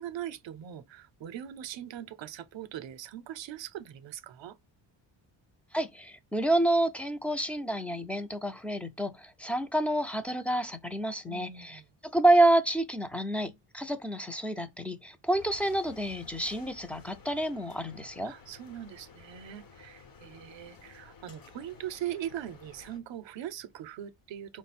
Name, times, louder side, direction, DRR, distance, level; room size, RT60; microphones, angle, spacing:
voice 1, 0.0-4.6 11.2-11.8 18.2-24.6, right 11 dB, 65° right, 0.7 m, -41 dB
voice 2, 5.7-18.3, right 1 dB, 5° left, 0.4 m, -28 dB
sound 1, 15.3-23.0, left 5 dB, 45° left, 1.0 m, -53 dB
4.8 x 2.1 x 4.1 m
cardioid pair, 120°, 48 cm